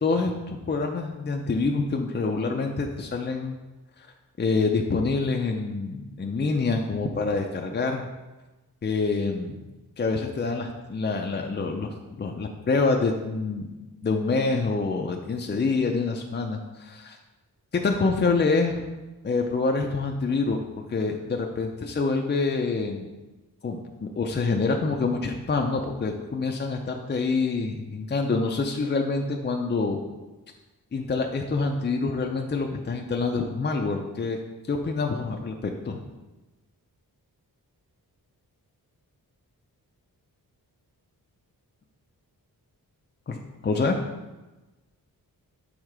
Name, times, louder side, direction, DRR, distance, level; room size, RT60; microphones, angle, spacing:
voice 1, 0.0-3.6 4.4-8.1 8.8-9.6 10.0-13.7 14.0-17.2 17.8-18.8 19.2-20.6 20.9-23.1 23.6-30.0 30.9-34.4 34.7-36.0 43.3-43.4 43.6-44.0, left 4 dB, 30° left, 2 dB, 0.4 m, -26 dB
6.5 x 3.5 x 4.8 m, 1.1 s
wide cardioid pair, 125°, 37 cm